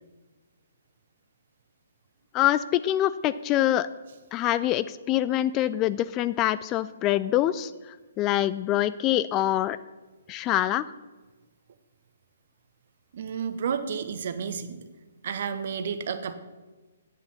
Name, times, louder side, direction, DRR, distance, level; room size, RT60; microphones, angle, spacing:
voice 1, 2.3-3.9 4.3-7.7 8.2-9.8 10.3-10.9, left 13 dB, 25° left, 15 dB, 0.3 m, -25 dB
voice 2, 13.1-14.8 15.2-16.3, right 7 dB, 50° right, 11 dB, 0.9 m, -31 dB
9.6 x 8.5 x 5.9 m, 1.3 s
figure-of-eight pair, 130°, 0 cm